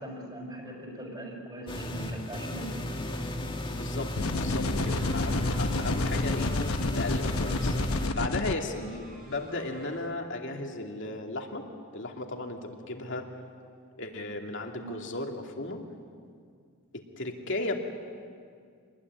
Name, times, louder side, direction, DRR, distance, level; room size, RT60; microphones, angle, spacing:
voice 1, 0.0-2.8 14.7-15.3, right 1 dB, 20° right, 0 dB, 5.2 m, -41 dB
sound 1, 1.7-8.1, left 1 dB, 25° left, 2.2 m, -34 dB
voice 2, 3.7-6.6 6.9-7.7 8.1-11.6 11.9-13.3 14.0-15.8 17.2-17.8, left 2 dB, 60° left, 2 dB, 2.7 m, -35 dB
sound 2, 4.2-8.5, left 2 dB, 85° left, 1.1 m, -30 dB
sound 3, 4.6-10.3, right 3 dB, 40° right, 3.6 m, -50 dB
26.5 x 21.0 x 9.7 m, 2.2 s
head